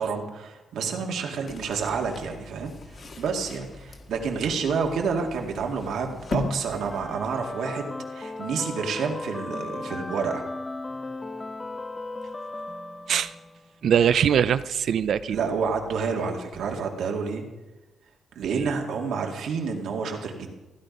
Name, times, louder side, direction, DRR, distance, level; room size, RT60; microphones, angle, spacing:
voice 1, 0.0-2.7 3.2-10.4 15.3-17.4 18.4-20.6, right 5 dB, 75° right, 2 dB, 2.2 m, -29 dB
sound 1, 1.5-7.7, left 2 dB, 35° left, 1.6 m, -38 dB
sound 2, 6.7-13.7, left 2 dB, 15° left, 0.4 m, -36 dB
voice 2, 13.8-15.4 18.4-18.7, right 8 dB, 60° right, 14 dB, 0.4 m, -22 dB
16.0 x 11.0 x 5.3 m, 1.1 s
wide cardioid pair, 165°, 0 cm